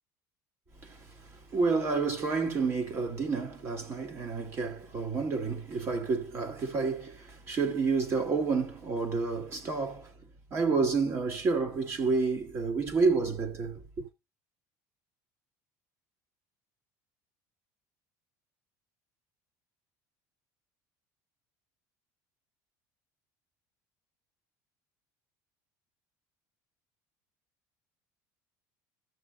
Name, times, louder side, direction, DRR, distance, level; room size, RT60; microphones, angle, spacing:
voice 1, 1.5-10.1 10.5-13.8, right 4 dB, 35° right, 2.7 m, -29 dB
15.5 x 6.5 x 2.6 m
cardioid pair, 160°, 8 cm